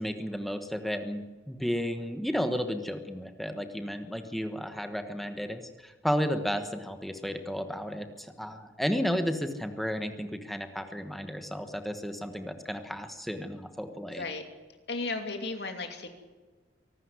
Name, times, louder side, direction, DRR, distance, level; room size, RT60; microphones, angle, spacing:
voice 1, 0.0-14.2, equal, ahead, 7 dB, 1.2 m, -33 dB
voice 2, 14.1-14.4 14.9-16.1, left 3 dB, 60° left, 6 dB, 2.8 m, -34 dB
24.0 x 12.5 x 9.6 m, 1.3 s
head